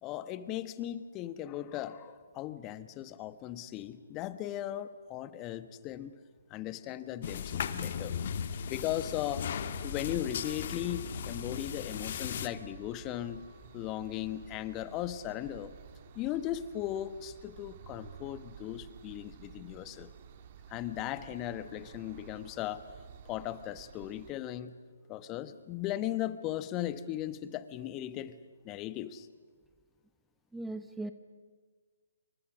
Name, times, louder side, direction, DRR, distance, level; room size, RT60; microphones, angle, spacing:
voice 1, 0.0-6.1 6.5-8.1 8.7-9.4 9.8-13.4 13.7-15.7 16.1-20.1 20.7-22.8 23.3-24.8 25.1-28.3 28.6-29.3, left 12 dB, 20° left, 14 dB, 1.2 m, -37 dB
sound 1, 7.2-12.5, left 7 dB, 45° left, 1.6 m, -37 dB
sound 2, 9.6-24.3, right 8 dB, 40° right, 1.7 m, -52 dB
Wind instrument woodwind instrument, 10.3-16.1, left 4 dB, 65° left, 4.5 m, -60 dB
voice 2, 30.5-31.1, right 2 dB, 5° right, 9 dB, 0.9 m, -38 dB
29.0 x 25.5 x 6.2 m, 1.5 s
figure-of-eight pair, 140°, 0 cm